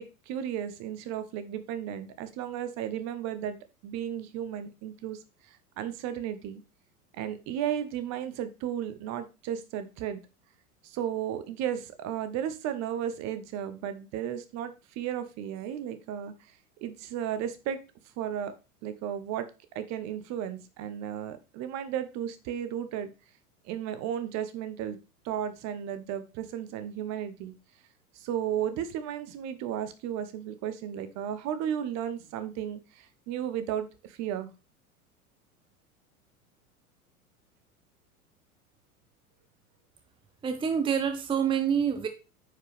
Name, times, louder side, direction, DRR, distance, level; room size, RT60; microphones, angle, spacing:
voice 1, 0.0-3.6 3.8-5.2 5.5-6.6 7.2-10.2 10.8-16.3 16.8-17.8 18.2-18.5 18.8-19.5 19.7-23.1 23.6-25.0 25.2-27.6 28.1-34.5, right 10 dB, 40° right, 11 dB, 1.1 m, -34 dB
voice 2, 40.4-42.1, right 7 dB, 10° right, 7 dB, 0.8 m, -27 dB
9.3 x 5.0 x 3.3 m, 0.29 s
figure-of-eight pair, 85°, 44 cm